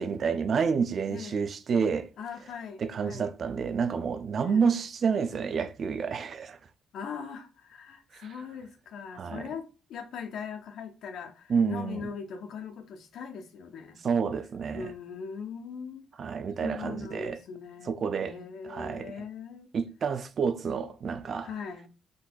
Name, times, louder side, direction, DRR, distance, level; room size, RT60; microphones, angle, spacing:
voice 1, 0.0-2.1 2.8-6.6 9.2-9.4 11.5-12.0 14.0-14.9 16.2-17.4 17.9-18.4 18.7-19.1 19.7-21.5, right 6 dB, 50° right, 0.4 m, -29 dB
voice 2, 1.1-1.5 2.2-3.3 4.4-4.7 6.9-14.0 14.7-16.1 16.6-17.9 18.2-19.7 21.4-21.9, left 6 dB, 75° left, 0.7 m, -40 dB
3.8 x 2.6 x 2.3 m
cardioid pair, 90°, 0 cm